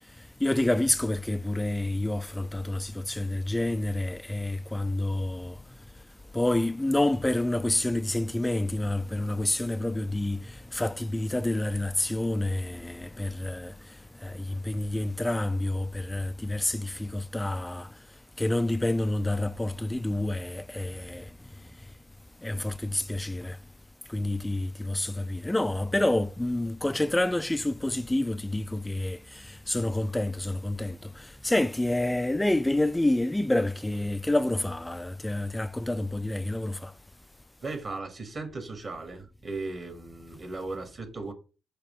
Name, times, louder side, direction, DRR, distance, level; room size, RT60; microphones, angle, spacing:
voice 1, 0.4-5.6 6.3-13.7 14.2-17.9 18.4-21.3 22.4-23.6 24.1-36.9, left 1 dB, 10° left, 0.3 m, -28 dB
voice 2, 37.6-41.3, right 3 dB, 40° right, 1.5 m, -37 dB
6.6 x 2.9 x 5.3 m
figure-of-eight pair, 40°, 0 cm